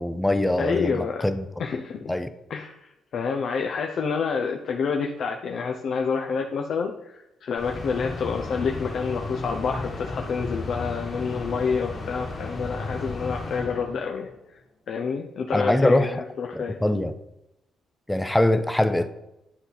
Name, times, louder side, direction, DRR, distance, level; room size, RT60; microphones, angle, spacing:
voice 1, 0.0-1.5 2.1-2.3 15.5-16.2 16.5-17.1 18.1-19.1, left 1 dB, 5° left, 10 dB, 0.6 m, -23 dB
voice 2, 0.6-1.2 1.6-2.1 2.5-14.3 14.9-16.8, left 5 dB, 60° left, 3 dB, 0.7 m, -28 dB
sound 1, 7.6-14.4, left 3 dB, 40° left, 2.1 m, -34 dB
11.0 x 4.1 x 4.0 m, 0.89 s
cardioid pair, 90°, 0 cm